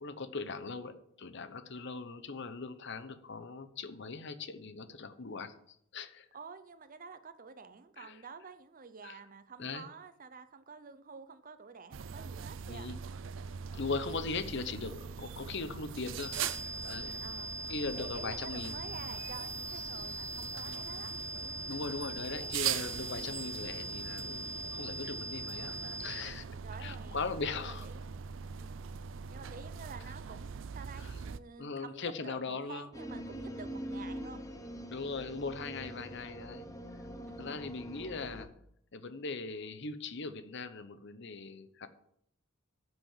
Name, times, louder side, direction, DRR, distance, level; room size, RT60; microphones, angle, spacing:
voice 1, 0.0-5.5 5.9-6.3 8.0-8.2 9.0-9.1 9.6-9.9 12.7-13.0 13.7-16.3 16.8-17.1 17.7-18.8 21.7-25.8 26.0-26.4 26.8-27.9 31.0-31.1 31.6-32.9 34.9-36.6 37.4-38.5 38.9-41.9, left 4 dB, 60° left, 11 dB, 0.9 m, -39 dB
voice 2, 6.3-12.9 17.2-17.5 18.0-22.6 23.3-23.5 26.6-27.2 27.5-28.0 28.6-28.9 29.3-34.4 36.1-36.2 37.2-37.6, right 5 dB, 40° right, 11 dB, 0.8 m, -50 dB
sound 1, 11.9-31.4, right 7 dB, 65° right, 0.4 m, -42 dB
sound 2, 16.2-26.2, right 1 dB, 25° right, 2.5 m, -41 dB
sound 3, 32.9-38.5, equal, 15° left, 0.9 m, -43 dB
10.0 x 6.1 x 7.4 m, 0.71 s
head